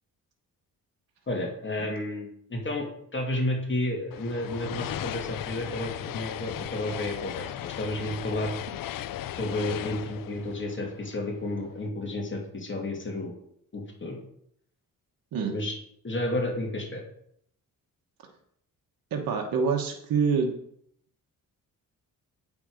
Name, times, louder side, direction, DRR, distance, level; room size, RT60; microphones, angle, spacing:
voice 1, 1.3-2.9 3.1-8.5 9.3-13.3 13.7-14.2 15.5-15.8 16.0-17.0, left 1 dB, 35° left, 0 dB, 2.8 m, -31 dB
sound 1, 4.1-11.5, left 12 dB, 70° left, 0.6 m, -37 dB
voice 2, 19.1-20.6, right 5 dB, 80° right, 2 dB, 1.3 m, -26 dB
8.8 x 7.0 x 5.1 m, 0.69 s
cardioid pair, 90°, 35 cm